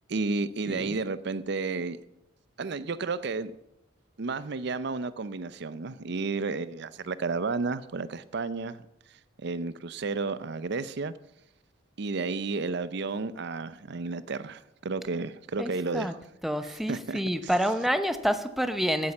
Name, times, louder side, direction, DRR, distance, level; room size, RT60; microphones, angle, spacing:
voice 1, 0.1-2.0 2.6-3.5 4.2-11.1 12.0-16.2 16.6-17.5, right 4 dB, 55° right, 0.5 m, -32 dB
voice 2, 15.6-16.1 16.4-19.1, equal, ahead, 0.8 m, -28 dB
15.0 x 8.7 x 7.1 m
head